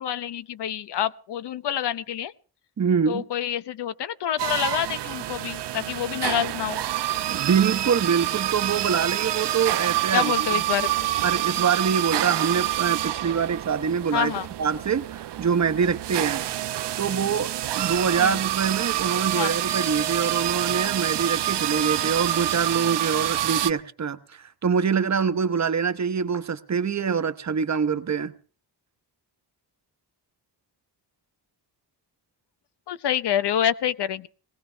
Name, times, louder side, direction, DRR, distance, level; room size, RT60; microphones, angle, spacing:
voice 1, 0.0-2.3 3.1-6.8 10.1-11.1 14.1-14.5 18.2-18.4 19.4-19.6 32.9-34.3, left 10 dB, 70° left, 0.9 m, -27 dB
voice 2, 2.8-3.2 7.3-10.6 11.2-14.3 14.6-28.3, right 6 dB, 40° right, 1.0 m, -25 dB
sound 1, 4.4-23.7, right 13 dB, 75° right, 0.8 m, -27 dB
19.5 x 17.5 x 3.4 m
wide cardioid pair, 125°, 42 cm